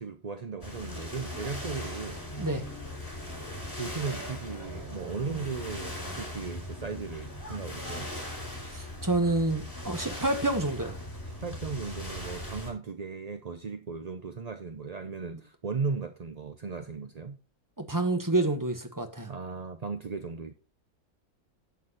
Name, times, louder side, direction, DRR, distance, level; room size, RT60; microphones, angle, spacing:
voice 1, 0.0-2.2 3.8-8.1 11.4-17.4 19.3-20.5, right 5 dB, 40° right, 0.6 m, -36 dB
sound 1, 0.6-12.7, left 1 dB, 20° left, 4.9 m, -39 dB
voice 2, 8.6-11.0 17.8-19.3, right 2 dB, 15° right, 1.4 m, -28 dB
10.5 x 8.4 x 4.1 m
omnidirectional pair, 1.6 m